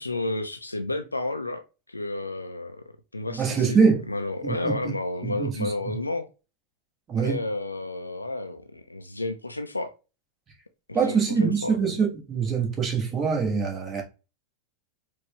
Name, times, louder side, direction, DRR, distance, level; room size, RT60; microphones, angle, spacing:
voice 1, 0.0-1.6 1.9-2.8 3.1-3.8 4.1-6.3 7.2-9.9 10.9-11.8, left 2 dB, 80° left, 0.4 m, -31 dB
voice 2, 3.3-4.0 4.4-4.9 5.2-5.7 7.1-7.4 10.9-14.0, right 5 dB, 25° right, 1.3 m, -24 dB
4.5 x 2.2 x 3.1 m
figure-of-eight pair, 90°, 0 cm